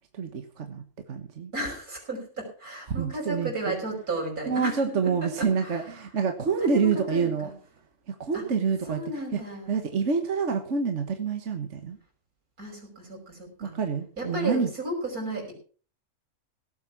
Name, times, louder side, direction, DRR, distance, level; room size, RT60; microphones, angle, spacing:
voice 1, 0.1-1.5 3.0-3.7 4.5-7.5 8.1-9.0 9.3-9.4 9.7-12.0 13.6-14.7, right 5 dB, 55° right, 6 dB, 1.6 m, -27 dB
voice 2, 1.5-5.8 6.6-7.5 8.3-8.4 8.9-9.7 12.6-13.7 14.2-15.5, right 2 dB, 90° right, 1 dB, 6.4 m, -34 dB
17.5 x 8.0 x 5.8 m, 0.41 s
omnidirectional pair, 1.5 m